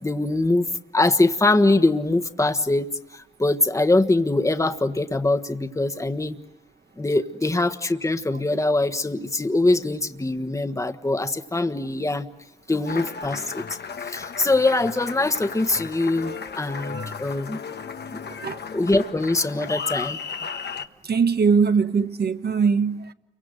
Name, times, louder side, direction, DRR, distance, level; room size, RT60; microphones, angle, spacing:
voice 1, 0.0-0.6 0.9-6.4 7.0-12.3 12.7-13.6 14.1-17.6 18.1-18.2 18.7-20.2, left 2 dB, 15° left, 1.4 m, -23 dB
Applause, 12.8-20.9, left 6 dB, 60° left, 1.2 m, -35 dB
voice 2, 18.3-18.6 21.0-23.1, right 5 dB, 55° right, 1.5 m, -21 dB
29.5 x 24.0 x 7.9 m
cardioid pair, 80°, 19 cm